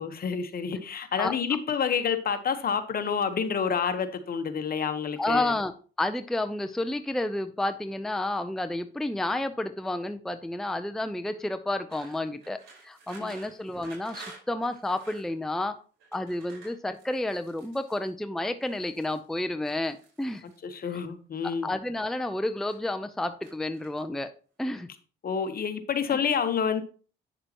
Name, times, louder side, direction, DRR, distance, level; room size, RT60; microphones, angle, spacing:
voice 1, 0.0-5.5 13.2-13.3 20.6-21.7 25.2-26.8, left 6 dB, 50° left, 9 dB, 1.1 m, -28 dB
voice 2, 5.2-5.7 6.0-15.8 16.1-20.4 21.4-24.3 24.6-24.9 26.1-26.2, left 1 dB, ahead, 9 dB, 0.5 m, -30 dB
sound 1, 11.9-15.3 16.0-18.1 18.6-19.2 19.6-20.6 21.4-22.1 22.4-23.0 23.4-24.2, right 4 dB, 80° right, 4.2 m, -51 dB
8.9 x 6.7 x 2.9 m, 0.38 s
cardioid pair, 90°, 20 cm